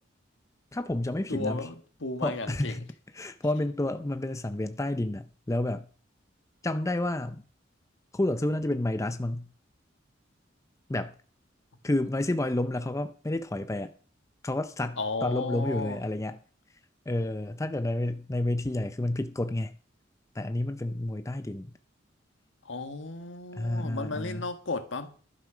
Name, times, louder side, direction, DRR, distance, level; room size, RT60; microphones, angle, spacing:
voice 1, 0.7-1.7 2.2-2.9 3.1-5.9 6.6-7.4 8.1-9.5 10.9-11.1 11.8-13.9 14.4-16.4 17.1-19.7 20.3-21.7 23.5-24.5, left 1 dB, 15° left, 0.5 m, -30 dB
voice 2, 1.3-2.7 15.0-16.0 22.7-25.1, left 3 dB, 70° left, 1.7 m, -34 dB
11.5 x 11.0 x 5.0 m
head